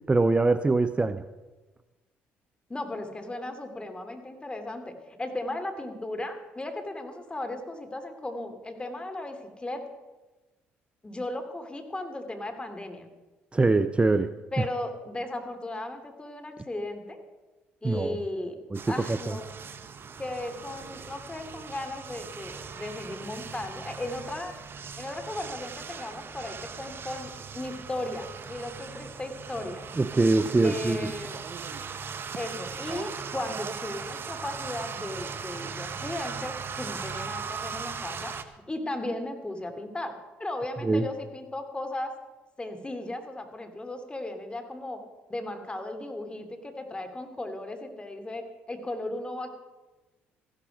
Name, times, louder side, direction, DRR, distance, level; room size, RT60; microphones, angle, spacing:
voice 1, 0.1-1.2 13.5-14.3 17.8-18.2 18.7-18.8 19.1-19.3 30.0-31.1 40.8-41.1, right 3 dB, 20° right, 13 dB, 0.6 m, -23 dB
voice 2, 2.7-9.8 11.0-13.1 14.5-17.2 17.8-18.6 18.9-19.4 20.2-24.5 25.0-29.9 30.6-31.4 32.3-38.3 38.7-40.1 40.4-42.1 42.6-45.0 45.3-49.5, left 1 dB, 20° left, 6 dB, 2.6 m, -36 dB
sound 1, 18.7-38.4, right 6 dB, 45° right, 1.1 m, -39 dB
15.0 x 12.0 x 5.1 m, 1.2 s
hypercardioid pair, 55°, 5 cm